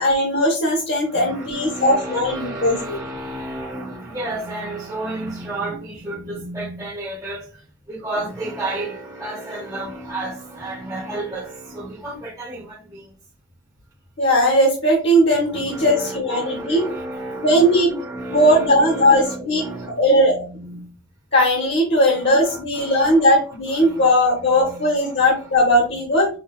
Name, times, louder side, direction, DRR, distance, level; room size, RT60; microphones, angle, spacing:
voice 1, 0.0-3.0 14.2-16.8 17.4-17.9 18.3-19.6 20.0-20.4 21.3-26.3, equal, 55° left, 0.9 m, -18 dB
voice 2, 1.1-13.1 15.5-20.9 22.1-23.2 23.8-24.1 24.5-25.4 25.9-26.0, right 2 dB, 15° right, 0.8 m, -32 dB
5.7 x 2.2 x 2.3 m
head